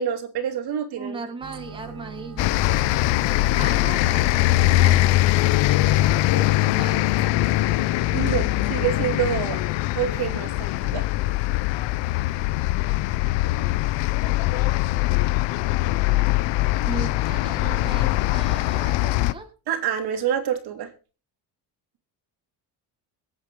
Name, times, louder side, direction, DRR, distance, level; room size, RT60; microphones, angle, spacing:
voice 1, 0.0-1.3 8.1-9.6 10.0-11.0 19.7-20.9, right 9 dB, 60° right, 5 dB, 2.6 m, -27 dB
voice 2, 1.0-2.7 3.5-5.5 6.3-7.0 8.3-9.1 16.1-16.2 16.8-19.5, right 3 dB, 10° right, 4 dB, 1.7 m, -38 dB
sound 1, 1.4-10.3, right 6 dB, 45° right, 1.5 m, -43 dB
sound 2, 2.4-19.3, left 17 dB, 90° left, 0.8 m, -22 dB
23.0 x 8.0 x 3.8 m, 0.35 s
cardioid pair, 155°, 43 cm